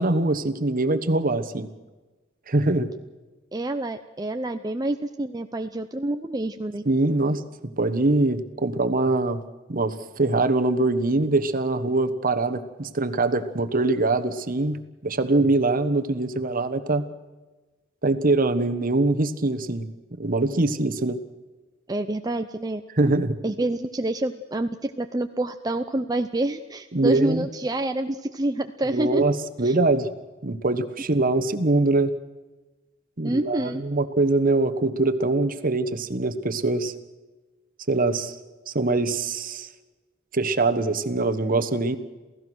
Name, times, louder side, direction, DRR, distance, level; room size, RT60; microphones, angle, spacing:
voice 1, 0.0-1.7 2.5-2.9 6.8-7.4 7.8-9.4 9.7-17.0 18.0-19.9 20.2-21.2 23.0-23.3 26.9-27.4 28.9-30.1 30.4-32.1 33.2-36.9 37.9-38.4 38.7-39.7 40.3-42.0, right 2 dB, 45° right, 11 dB, 1.2 m, -23 dB
voice 2, 3.5-6.8 21.9-22.8 23.4-29.3 29.6-29.7 33.2-33.8, right 1 dB, 20° right, 6 dB, 0.6 m, -27 dB
28.0 x 16.5 x 6.3 m, 1.2 s
head